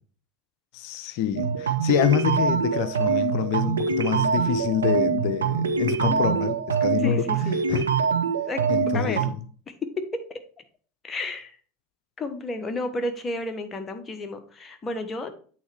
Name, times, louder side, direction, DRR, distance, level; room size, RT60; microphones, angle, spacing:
voice 1, 0.7-7.3 7.7-7.9 8.7-9.4, left 10 dB, 60° left, 0.7 m, -26 dB
sound 1, 1.4-9.3, right 6 dB, 85° right, 0.7 m, -24 dB
voice 2, 5.8-6.2 7.0-7.6 8.5-9.2 9.7-10.4 11.0-11.6 12.2-15.3, left 2 dB, 25° left, 1.3 m, -32 dB
8.6 x 4.0 x 4.6 m
hypercardioid pair, 80°, 0 cm